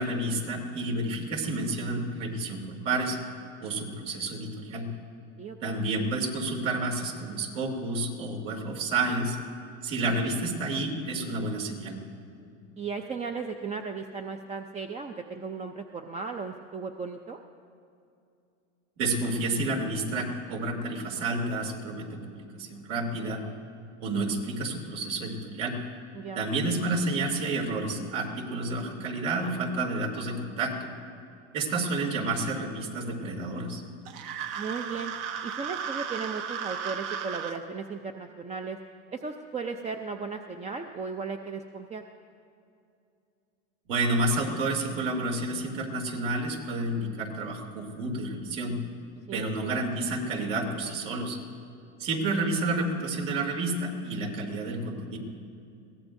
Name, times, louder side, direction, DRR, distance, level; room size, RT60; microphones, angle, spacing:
voice 1, 0.0-3.2 3.6-4.9 5.6-9.4 9.8-12.0 19.0-23.4 24.0-25.8 26.3-30.9 31.5-33.8 43.9-48.8 49.3-51.4 52.0-55.2, right 2 dB, 75° right, 0 dB, 2.9 m, -30 dB
voice 2, 5.4-5.7 12.8-17.4 26.1-26.5 34.6-35.1 35.4-38.8 39.1-42.0 49.3-49.7, right 5 dB, 20° right, 4 dB, 0.5 m, -36 dB
sound 1, 34.1-37.6, right 7 dB, 55° right, 1.0 m, -35 dB
22.5 x 17.0 x 2.6 m, 2.6 s
supercardioid pair, 115°, 37 cm